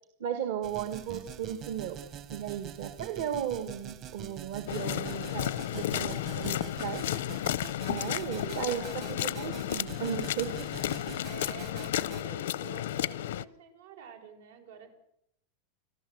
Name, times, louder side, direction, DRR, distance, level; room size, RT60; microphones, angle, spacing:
voice 1, 0.2-2.0 2.3-7.0 7.9-10.7, right 9 dB, 60° right, 9 dB, 1.5 m, -35 dB
sound 1, 0.6-12.2, right 9 dB, 30° right, 1.0 m, -45 dB
sound 2, 4.7-13.4, left 12 dB, 85° left, 0.7 m, -33 dB
voice 2, 8.4-9.5 11.2-14.9, right 7 dB, 90° right, 5 dB, 5.6 m, -49 dB
29.0 x 11.5 x 7.8 m, 0.76 s
supercardioid pair, 175°, 0 cm